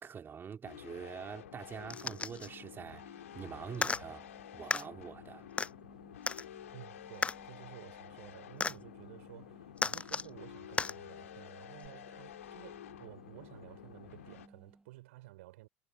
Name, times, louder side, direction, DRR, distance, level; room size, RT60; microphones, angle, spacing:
voice 1, 0.0-4.3 4.5-5.5, right 7 dB, 30° right, 2.6 m, -45 dB
sound 1, 0.6-14.5, left 11 dB, 70° left, 2.7 m, -51 dB
sound 2, 1.3-14.9, right 2 dB, 10° right, 1.8 m, -60 dB
sound 3, 1.9-2.5 3.7-4.0 4.7-4.8 5.6-5.7 6.3-6.4 7.2-7.4 8.6-8.8 9.8-10.3 10.8-10.9 11.8-11.9, left 4 dB, 15° left, 0.5 m, -33 dB
voice 2, 6.7-15.7, right 19 dB, 65° right, 5.5 m, -53 dB
figure-of-eight pair, 70°, 8 cm